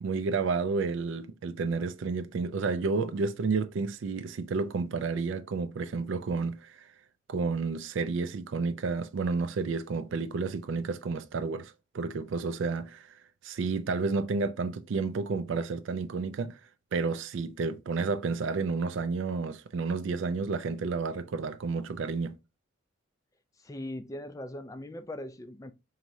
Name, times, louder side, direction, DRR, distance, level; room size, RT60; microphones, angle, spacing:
voice 1, 0.0-6.9 7.3-16.6 16.9-22.4, right 4 dB, 70° right, 0.4 m, -31 dB
voice 2, 23.6-25.7, left 1 dB, 15° left, 0.3 m, -40 dB
4.6 x 3.1 x 2.6 m
head